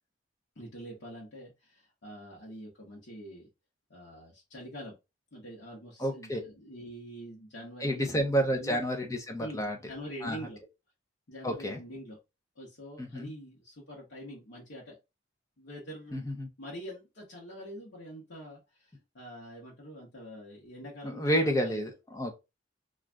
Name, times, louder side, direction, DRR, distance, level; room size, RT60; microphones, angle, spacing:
voice 1, 0.6-3.5 3.9-4.9 5.3-8.3 8.5-8.9 9.4-10.6 11.3-12.2 12.6-15.0 15.6-16.2 16.6-21.9, equal, 80° left, 1.0 m, -45 dB
voice 2, 6.0-6.4 7.8-9.8 10.2-10.4 11.4-11.8 13.0-13.3 16.1-16.5 21.0-22.3, equal, 15° left, 0.6 m, -30 dB
2.5 x 2.4 x 3.2 m
head